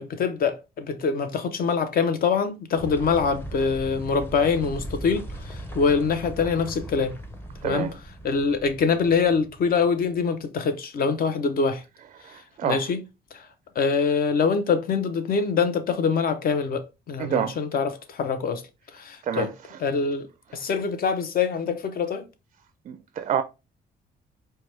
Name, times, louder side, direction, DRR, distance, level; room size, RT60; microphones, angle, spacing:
voice 1, 0.0-7.2 7.6-7.9 8.2-11.8 12.6-13.0 13.3-13.5 13.8-18.6 18.9-19.5 19.8-20.3 20.5-22.3, left 5 dB, 55° left, 0.7 m, -24 dB
sound 1, 2.8-10.1, right 1 dB, 10° left, 0.7 m, -39 dB
voice 2, 7.6-7.9 12.2-12.8 17.2-17.6 19.2-19.5 22.9-23.4, right 8 dB, 40° right, 0.4 m, -27 dB
4.6 x 2.2 x 3.2 m
cardioid pair, 105°, 18 cm